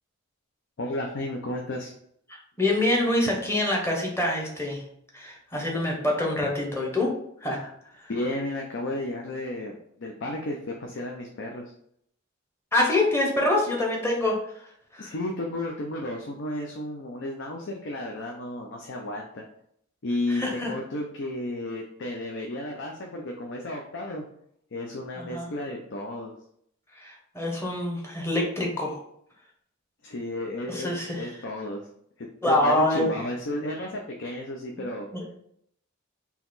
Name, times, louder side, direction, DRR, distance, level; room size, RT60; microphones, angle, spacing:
voice 1, 0.8-1.9 8.1-11.6 15.0-19.4 20.0-24.3 24.7-26.3 30.0-31.8 32.2-35.1, left 1 dB, 60° left, 1 dB, 0.6 m, -33 dB
voice 2, 2.6-4.8 5.1-7.1 7.4-8.1 12.7-15.1 20.3-20.7 25.2-25.5 26.9-29.0 30.7-31.2 32.4-33.1 35.1-35.2, left 1 dB, 10° left, -1 dB, 1.0 m, -26 dB
4.0 x 2.9 x 4.0 m, 0.69 s
head